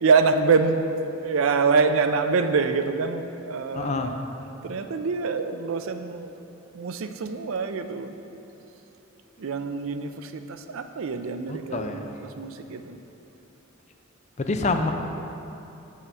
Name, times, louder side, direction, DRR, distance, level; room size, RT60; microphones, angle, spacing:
voice 1, 0.0-4.2 4.6-6.3 6.7-8.2 9.4-13.0, right 4 dB, 75° right, 8 dB, 0.4 m, -25 dB
voice 2, 3.7-4.2 11.5-12.1 14.4-14.9, left 3 dB, 35° left, 6 dB, 0.5 m, -27 dB
7.0 x 5.6 x 6.1 m, 2.9 s
head